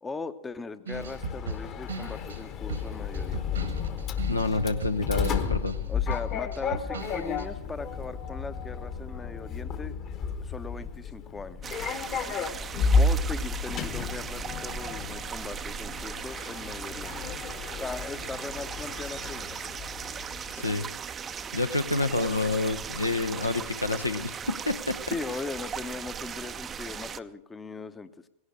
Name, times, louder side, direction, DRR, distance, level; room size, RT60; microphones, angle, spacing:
voice 1, 0.0-3.6 5.9-10.0 10.4-11.7 12.9-17.3 17.8-19.8 20.4-20.6 25.1-28.1, left 4 dB, 15° left, 12 dB, 0.8 m, -39 dB
Sliding door, 0.9-20.5, left 4 dB, 35° left, 1.2 m, -32 dB
sound 1, 0.9-7.4, right 3 dB, 70° right, 1.5 m, -37 dB
voice 2, 4.3-5.8 20.6-20.8 21.5-25.0, left 2 dB, 85° left, 9 dB, 0.8 m, -28 dB
sound 2, 11.6-27.2, right 7 dB, 20° right, 0.5 m, -38 dB
18.0 x 11.5 x 6.5 m, 0.86 s
figure-of-eight pair, 90°, 0 cm